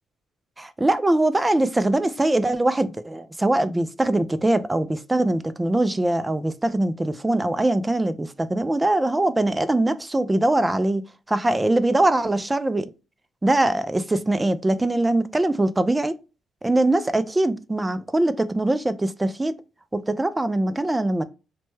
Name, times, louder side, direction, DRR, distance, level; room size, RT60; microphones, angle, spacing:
voice 1, 0.6-11.0 11.3-12.9 13.4-16.2 16.6-19.6 19.9-21.2, right 1 dB, 15° right, 0.3 m, -22 dB
3.0 x 2.2 x 3.1 m
cardioid pair, 90°, 0 cm